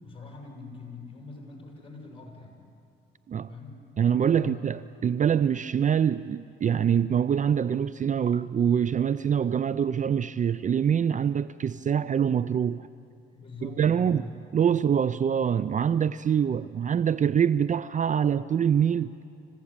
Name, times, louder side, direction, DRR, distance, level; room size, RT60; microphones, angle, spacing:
voice 1, 0.0-2.6 3.5-3.8 4.3-4.6 13.3-14.3, left 5 dB, 25° left, 7.1 m, -43 dB
voice 2, 4.0-12.9 13.6-19.1, right 8 dB, 40° right, 0.5 m, -25 dB
26.5 x 16.0 x 8.8 m
cardioid pair, 80°, 20 cm